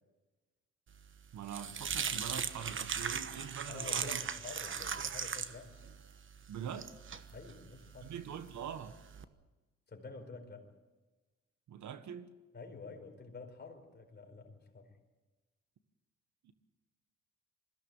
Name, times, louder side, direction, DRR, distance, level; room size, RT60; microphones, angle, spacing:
sound 1, 1.0-9.2, right 6 dB, 40° right, 1.2 m, -39 dB
voice 1, 1.3-4.2 6.5-6.9 8.0-9.0 11.7-12.3 16.4-16.5, right 8 dB, 70° right, 1.5 m, -43 dB
voice 2, 3.6-5.8 7.3-8.1 9.9-10.7 12.5-14.9, left 4 dB, 35° left, 4.5 m, -49 dB
21.5 x 16.0 x 9.1 m
cardioid pair, 90°, 30 cm